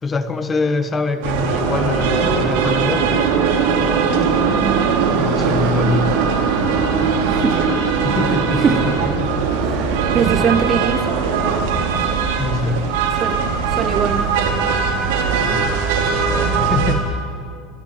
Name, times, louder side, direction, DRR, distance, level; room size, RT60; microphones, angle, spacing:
voice 1, 0.0-3.3 5.2-6.2 8.0-9.4 12.4-12.9 15.4-17.2, left 3 dB, 15° left, 10 dB, 1.2 m, -24 dB
sound 1, 1.2-16.9, right 5 dB, 70° right, 3.9 m, -19 dB
voice 2, 4.5-4.9 7.2-7.6 8.6-8.8 9.6-11.2 13.2-13.4 13.7-14.6, right 7 dB, 25° right, 11 dB, 0.8 m, -22 dB
24.5 x 14.5 x 8.8 m, 2.2 s
supercardioid pair, 155°, 0 cm